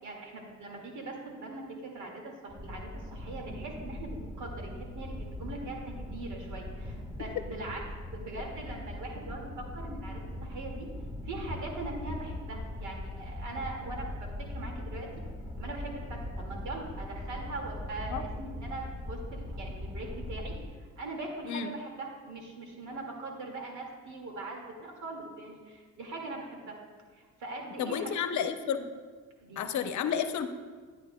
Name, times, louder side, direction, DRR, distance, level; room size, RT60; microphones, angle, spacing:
voice 1, 0.0-7.8 8.1-10.9 11.2-15.1 15.6-26.8 27.1-28.5 29.4-29.6, right 2 dB, 75° right, 0 dB, 2.1 m, -41 dB
sound 1, 2.5-20.6, left 1 dB, 10° right, 1.4 m, -40 dB
voice 2, 27.8-28.9 29.6-30.5, left 8 dB, 70° left, 9 dB, 0.7 m, -31 dB
11.5 x 9.5 x 2.2 m, 1.5 s
cardioid pair, 90°, 30 cm